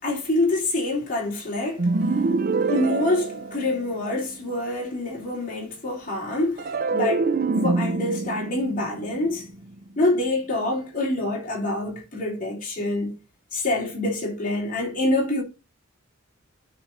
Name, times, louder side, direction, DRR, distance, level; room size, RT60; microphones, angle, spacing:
voice 1, 0.0-1.8 2.7-9.5 10.0-13.1 13.5-15.4, left 2 dB, 40° left, 3.4 m, -26 dB
sound 1, 1.8-4.2 6.6-9.9, right 3 dB, 45° right, 0.5 m, -26 dB
12.0 x 4.3 x 2.7 m
head